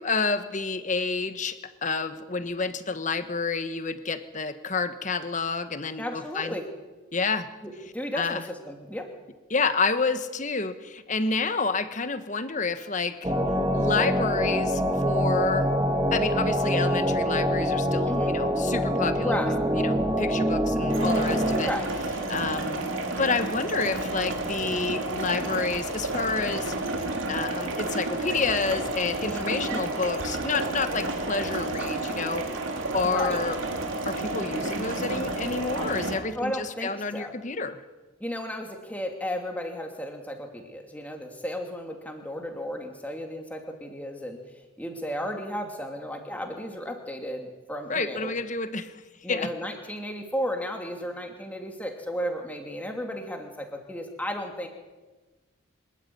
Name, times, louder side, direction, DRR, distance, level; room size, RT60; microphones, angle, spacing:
voice 1, 0.0-6.6 7.1-7.5 8.1-8.4 9.5-13.3 13.7-15.7 16.1-19.4 19.7-21.7 22.3-22.8 23.2-26.7 27.3-32.5 32.9-33.6 34.0-37.8 47.9-48.9 49.3-49.5, left 4 dB, 35° left, 11 dB, 1.3 m, -29 dB
voice 2, 6.0-6.7 7.6-9.1 18.0-18.3 19.2-19.6 21.6-21.9 29.2-29.9 33.0-33.4 35.8-35.9 36.3-37.3 38.2-44.4 44.8-48.3 49.2-54.7, equal, 5° left, 3 dB, 2.7 m, -34 dB
sound 1, 13.2-21.6, equal, 20° right, 2.1 m, -25 dB
sound 2, 20.9-36.2, right 2 dB, 75° right, 3.0 m, -31 dB
25.5 x 12.5 x 9.5 m, 1.2 s
head